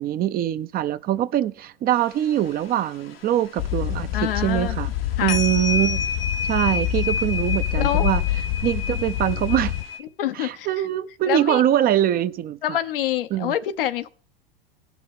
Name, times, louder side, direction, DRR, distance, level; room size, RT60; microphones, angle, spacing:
voice 1, 0.0-4.9 5.2-6.0 6.5-8.2 8.6-9.7 10.3-12.6 13.3-13.5, right 12 dB, 30° right, 0.6 m, -23 dB
sound 1, 2.0-2.8 3.1-3.5 3.8-3.9 4.6-5.0 5.3-10.0, left 5 dB, 85° left, 1.7 m, -29 dB
sound 2, 3.6-9.8, left 13 dB, 45° left, 0.6 m, -27 dB
voice 2, 4.1-4.8 5.2-5.4 7.8-8.1 10.2-10.7 11.3-11.6 12.6-14.1, left 11 dB, 70° left, 0.9 m, -26 dB
17.5 x 6.0 x 3.5 m
hypercardioid pair, 85°, 29 cm